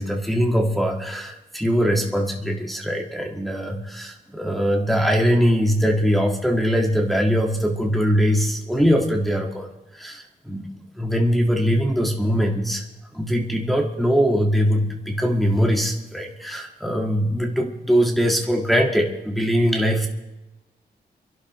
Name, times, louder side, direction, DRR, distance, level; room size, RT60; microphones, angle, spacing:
voice 1, 0.0-9.7 9.9-12.8 13.1-20.1, equal, ahead, 0 dB, 1.7 m, -21 dB
26.5 x 11.5 x 3.1 m, 1.0 s
wide cardioid pair, 125°, 17 cm